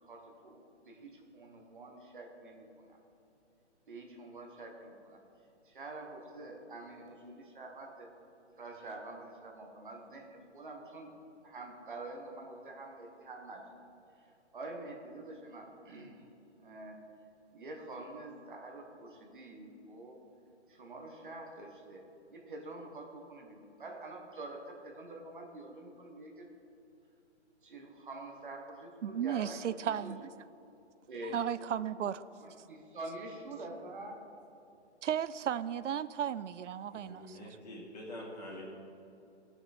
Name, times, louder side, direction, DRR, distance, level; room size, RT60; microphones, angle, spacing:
voice 1, 0.0-3.0 3.9-5.2 5.6-8.1 8.6-11.1 11.4-13.6 14.5-16.3 16.6-17.0 17.5-20.2 20.7-22.0 22.3-26.5 27.6-30.1 31.1-31.4 32.4-34.2, right 2 dB, 45° right, 1 dB, 1.3 m, -46 dB
voice 2, 29.0-30.3 31.2-32.2 35.0-37.5, right 9 dB, 90° right, 16 dB, 0.5 m, -35 dB
voice 3, 36.9-38.6, left 1 dB, 35° left, -5 dB, 2.6 m, -46 dB
17.0 x 6.0 x 4.2 m, 2.8 s
hypercardioid pair, 175°, 35 cm